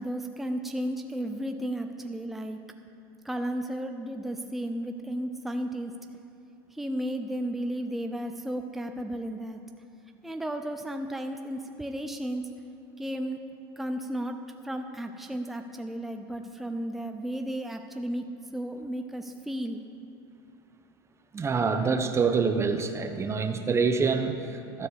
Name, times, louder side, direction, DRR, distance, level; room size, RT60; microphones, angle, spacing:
voice 1, 0.0-2.6 3.2-5.9 6.7-9.6 10.2-12.4 13.0-13.4 13.8-14.4 14.6-18.3 18.5-19.8, right 1 dB, ahead, 5 dB, 0.5 m, -33 dB
voice 2, 21.3-24.9, right 5 dB, 20° right, 6 dB, 0.9 m, -26 dB
12.5 x 4.7 x 8.1 m, 2.5 s
supercardioid pair, 110°, 12 cm